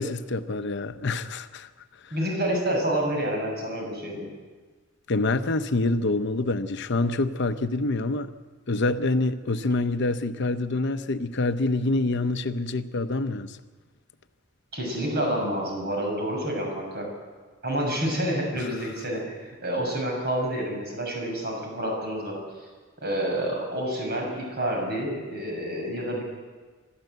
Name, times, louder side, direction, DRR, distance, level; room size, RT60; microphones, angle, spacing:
voice 1, 0.0-1.7 2.0-2.1 5.1-8.3 8.7-13.6 18.6-18.7, left 2 dB, 60° left, 0.8 m, -26 dB
voice 2, 2.1-4.3 14.7-17.1 17.6-22.4 23.0-26.2, right 1 dB, 50° right, 6.8 m, -28 dB
24.5 x 13.5 x 8.1 m
head